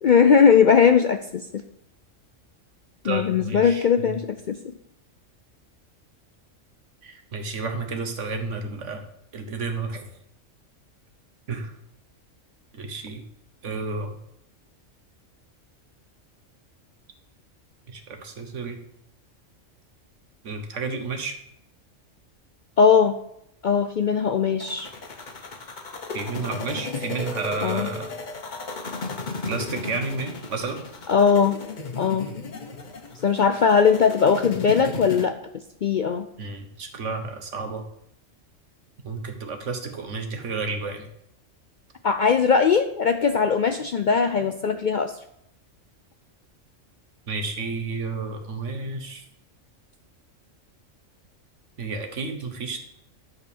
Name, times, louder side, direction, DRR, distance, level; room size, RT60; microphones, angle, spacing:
voice 1, 0.0-1.6 3.0-4.6 22.8-23.2 23.6-24.9 27.6-27.9 31.1-31.6 32.0-32.3 33.2-35.4 35.8-36.3 42.0-45.1, left 6 dB, 60° left, 7 dB, 0.5 m, -19 dB
voice 2, 3.0-4.2 7.0-9.0 9.3-10.1 11.5-11.7 12.7-13.2 13.6-14.1 17.9-18.8 20.4-21.4 26.1-28.1 29.4-30.8 36.4-37.8 39.0-41.1 47.3-49.2 51.8-52.8, right 4 dB, 70° right, 5 dB, 1.5 m, -31 dB
sound 1, 24.6-35.3, left 3 dB, 40° left, 1.0 m, -35 dB
11.0 x 4.1 x 6.9 m, 0.76 s
omnidirectional pair, 1.3 m